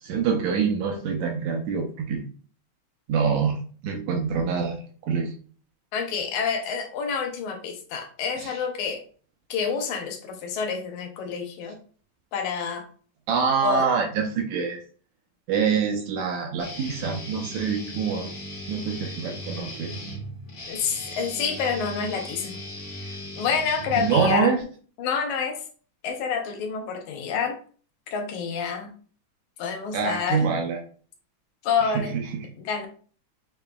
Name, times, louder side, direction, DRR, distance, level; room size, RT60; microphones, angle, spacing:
voice 1, 0.0-2.2 3.1-5.3 8.4-8.6 13.3-14.8 15.5-18.3 18.7-20.0 24.0-24.6 29.9-30.8 31.8-32.5, right 6 dB, 80° right, 3 dB, 1.8 m, -25 dB
voice 2, 5.9-9.0 9.5-11.8 12.3-12.9 13.6-13.9 20.7-22.6 23.4-24.5 25.0-25.6 26.0-27.6 28.1-28.9 29.6-30.4 31.6-32.2 32.6-32.9, left 6 dB, 80° left, 4 dB, 2.0 m, -28 dB
Guitar, 16.6-24.6, equal, 55° left, 0.9 m, -37 dB
6.7 x 2.8 x 2.2 m, 0.42 s
omnidirectional pair, 3.6 m